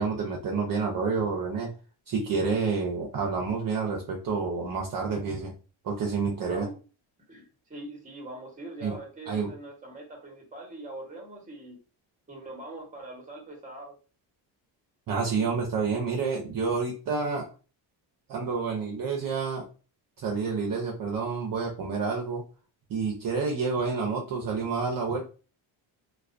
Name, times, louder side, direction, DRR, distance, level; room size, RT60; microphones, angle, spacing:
voice 1, 0.0-1.7 2.1-5.5 5.8-6.7 8.8-9.0 9.3-9.5 15.1-17.5 18.3-19.6 20.2-22.4 22.9-25.3, right 4 dB, 45° right, -1 dB, 0.6 m, -29 dB
voice 2, 7.3-11.8 12.3-13.9, right 1 dB, 15° right, 1 dB, 0.8 m, -42 dB
2.3 x 2.2 x 2.4 m, 0.35 s
cardioid pair, 120°, 48 cm